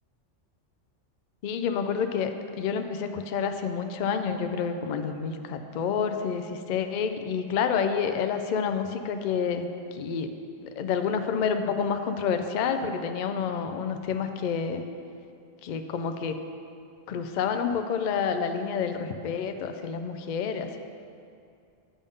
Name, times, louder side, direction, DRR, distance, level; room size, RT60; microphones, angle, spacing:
voice 1, 1.4-10.3 10.6-14.8 15.6-16.4 17.1-20.8, left 6 dB, 70° left, 7 dB, 0.4 m, -29 dB
9.8 x 5.4 x 3.6 m, 2.5 s
omnidirectional pair, 1.3 m